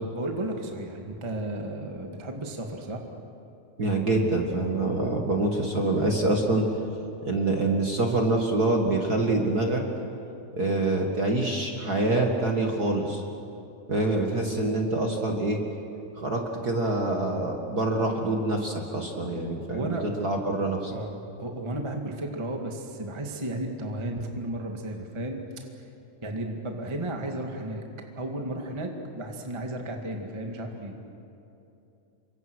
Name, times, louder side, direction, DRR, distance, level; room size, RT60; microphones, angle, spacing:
voice 1, 0.1-3.0 19.6-20.0 20.9-25.4 26.2-27.8 28.2-30.9, right 1 dB, 25° right, 2 dB, 0.6 m, -33 dB
voice 2, 3.8-6.6 7.3-9.8 10.6-13.2 13.9-15.6 16.2-20.9, right 2 dB, 40° right, 1 dB, 1.4 m, -26 dB
29.0 x 24.5 x 6.3 m, 2.8 s
omnidirectional pair, 4.5 m